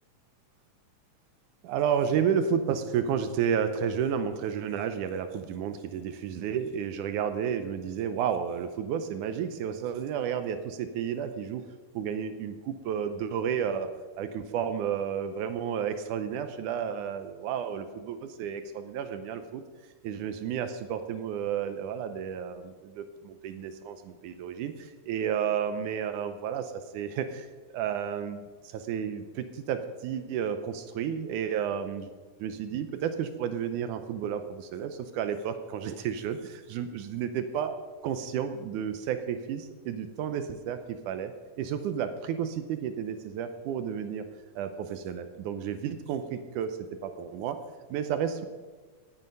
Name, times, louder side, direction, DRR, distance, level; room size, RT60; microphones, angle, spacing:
voice 1, 1.6-11.6 12.0-13.9 14.2-19.6 20.0-27.5 27.7-32.1 32.4-37.8 38.0-41.3 41.6-44.3 44.6-47.6 47.9-48.5, right 8 dB, 75° right, 9 dB, 2.1 m, -32 dB
17.0 x 8.0 x 5.3 m, 1.4 s
omnidirectional pair, 3.8 m